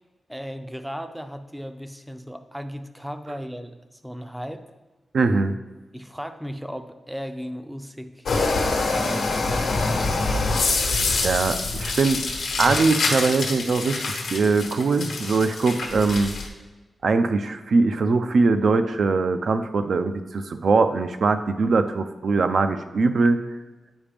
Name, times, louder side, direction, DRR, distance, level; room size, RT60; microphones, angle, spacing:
voice 1, 0.3-4.6 5.9-8.3 8.7-10.0, equal, 5° right, 8 dB, 0.4 m, -36 dB
voice 2, 5.1-5.6 11.2-12.3 12.6-16.3 17.0-23.4, right 4 dB, 60° right, 9 dB, 0.4 m, -21 dB
sound 1, 8.3-16.5, left 3 dB, 90° left, 1.0 m, -25 dB
8.8 x 4.8 x 3.5 m, 1.2 s
wide cardioid pair, 145°, 0 cm